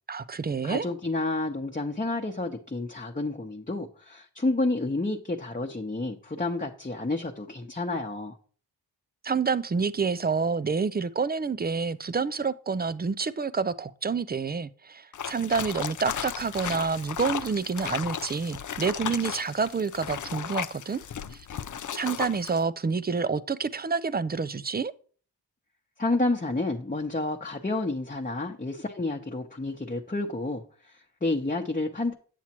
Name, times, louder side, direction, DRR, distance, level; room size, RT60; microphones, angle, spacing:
voice 1, 0.1-0.9 9.2-21.0 21.3-21.5 21.9-24.9, right 5 dB, 20° right, 0.5 m, -28 dB
voice 2, 0.6-8.4 26.0-32.2, left 2 dB, 20° left, 1.0 m, -30 dB
sound 1, 15.1-22.6, left 9 dB, 45° left, 0.5 m, -35 dB
8.3 x 7.2 x 3.0 m
cardioid pair, 45°, 44 cm